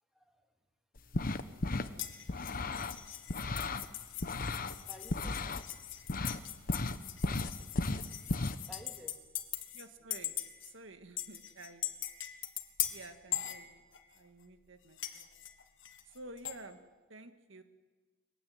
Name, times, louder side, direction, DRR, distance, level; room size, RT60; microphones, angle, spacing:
voice 1, 0.1-0.5 3.1-3.4 4.0-4.5 4.8-5.4 6.4-6.6 8.7-9.2, left 1 dB, ahead, 3 dB, 2.5 m, -54 dB
sound 1, 1.0-1.9 2.3-3.9 4.2-5.6 6.1-6.4 6.7-8.6, left 2 dB, 45° left, 1.0 m, -34 dB
sound 2, 2.0-9.9 10.1-10.7 11.2-14.2 15.0-16.6, left 12 dB, 70° left, 1.8 m, -41 dB
voice 2, 9.7-10.3 10.6-11.9 12.9-13.8 14.1-15.3 16.1-16.8 17.1-17.6, right 2 dB, 70° right, 8 dB, 1.9 m, -51 dB
23.0 x 16.0 x 9.5 m, 1.3 s
head